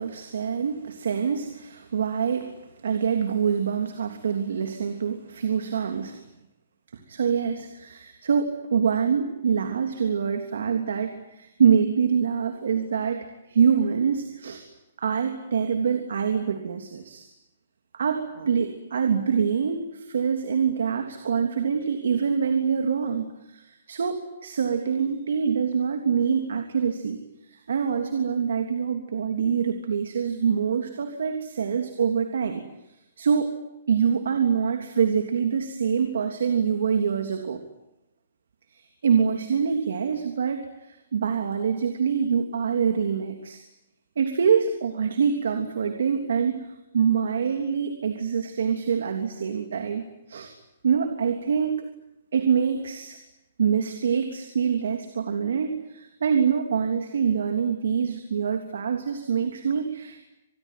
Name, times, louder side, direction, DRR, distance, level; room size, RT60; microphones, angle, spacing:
voice 1, 0.0-6.2 7.1-14.6 15.0-17.2 17.9-27.2 27.5-32.6 33.2-33.5 33.9-37.6 38.7-43.6 44.2-50.0 50.3-50.5 50.8-51.8 52.3-53.2 53.6-60.2, right 6 dB, 70° right, 5 dB, 3.2 m, -25 dB
27.0 x 21.5 x 9.4 m, 0.92 s
hypercardioid pair, 175°, 0 cm